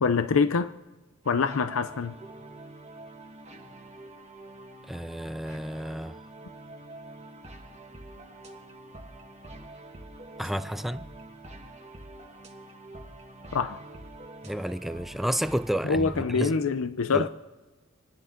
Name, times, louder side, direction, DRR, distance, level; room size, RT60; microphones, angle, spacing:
voice 1, 0.0-0.7 1.3-2.1 13.5-13.8 15.8-17.3, left 5 dB, 80° left, 0.6 m, -25 dB
sound 1, 1.2-16.5, right 2 dB, 35° right, 1.5 m, -46 dB
voice 2, 4.9-6.2 10.4-11.1 14.4-16.6 17.1-17.3, equal, ahead, 0.3 m, -31 dB
28.0 x 10.5 x 3.8 m
head